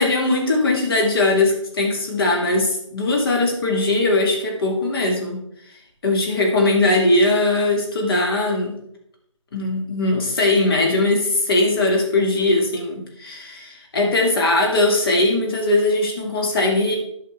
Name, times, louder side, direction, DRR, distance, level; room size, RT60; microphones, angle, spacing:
voice 1, 0.0-5.4 6.0-8.8 9.5-17.0, left 2 dB, 45° left, 0 dB, 2.9 m, -20 dB
13.0 x 5.1 x 4.1 m, 0.73 s
figure-of-eight pair, 160°, 17 cm